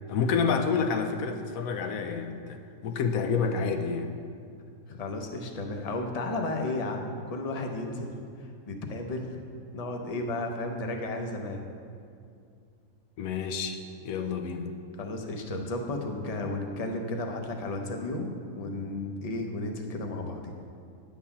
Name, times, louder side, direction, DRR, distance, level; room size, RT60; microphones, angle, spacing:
voice 1, 0.1-4.1 13.2-13.8 14.0-14.7, left 5 dB, 80° left, 7 dB, 1.0 m, -29 dB
voice 2, 4.9-9.4 9.7-11.7 15.0-20.6, left 2 dB, 35° left, 3 dB, 0.6 m, -33 dB
9.7 x 3.8 x 7.0 m, 2.4 s
omnidirectional pair, 1.5 m